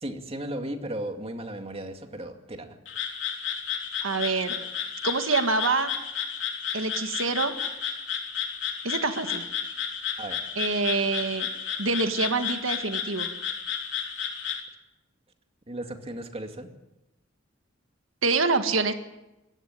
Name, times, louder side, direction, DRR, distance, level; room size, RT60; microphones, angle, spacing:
voice 1, 0.0-2.8 10.2-10.4 15.7-16.7, right 1 dB, 30° right, 5 dB, 2.3 m, -35 dB
Frog, 2.9-14.6, left 8 dB, 65° left, 3.6 m, -32 dB
voice 2, 4.0-4.6 5.0-5.9 6.7-7.5 8.8-9.4 10.6-11.5 11.8-13.3 18.2-18.9, right 3 dB, 80° right, 7 dB, 1.8 m, -26 dB
22.5 x 16.5 x 9.2 m, 0.97 s
head